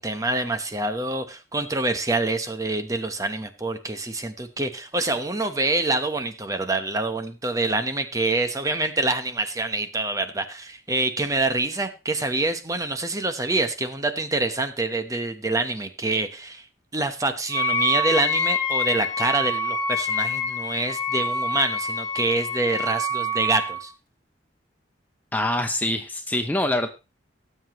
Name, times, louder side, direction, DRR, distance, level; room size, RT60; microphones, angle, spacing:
voice 1, 0.0-16.6 16.9-23.9, right 2 dB, 20° right, 7 dB, 0.9 m, -26 dB
Wind instrument woodwind instrument, 17.5-23.8, left 2 dB, 25° left, 1.8 m, -26 dB
voice 2, 25.3-26.9, left 1 dB, 10° left, 6 dB, 0.6 m, -24 dB
18.0 x 7.7 x 3.0 m, 0.29 s
head